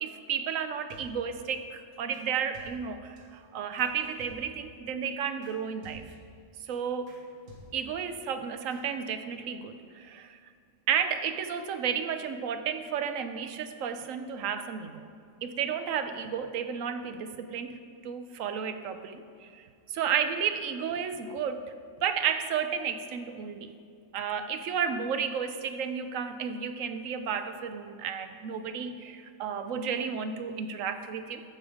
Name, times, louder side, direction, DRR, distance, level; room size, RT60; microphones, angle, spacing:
voice 1, 0.0-6.0 6.7-7.1 7.7-10.4 10.9-15.1 15.4-21.7 22.0-23.7 24.1-31.4, right 7 dB, 70° right, 9 dB, 1.0 m, -32 dB
sound 1, 0.9-1.4 2.1-2.3 2.5-3.2 3.8-4.7 5.4-5.6 5.8-6.4 6.7-6.8 7.1-7.2 7.5-8.0 8.7-8.8, right 1 dB, 90° right, 2.0 m, -51 dB
13.0 x 5.3 x 4.9 m, 2.2 s
omnidirectional pair, 1.5 m